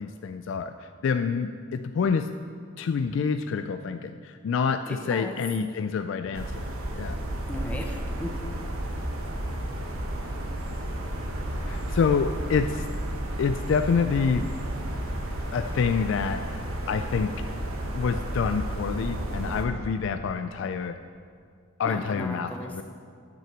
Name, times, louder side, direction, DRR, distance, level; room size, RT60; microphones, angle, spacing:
voice 1, 0.0-2.3 2.8-6.6 7.0-7.2 11.7-12.9 13.4-14.5 15.5-17.3 17.9-21.0 21.8-22.8, left 5 dB, 65° left, 8 dB, 0.3 m, -27 dB
voice 2, 4.9-5.4 7.5-8.3 21.9-22.8, left 1 dB, 5° left, 2 dB, 0.8 m, -36 dB
sound 1, 6.3-19.7, right 1 dB, 90° right, 1.2 m, -32 dB
9.1 x 5.6 x 7.4 m, 2.2 s
head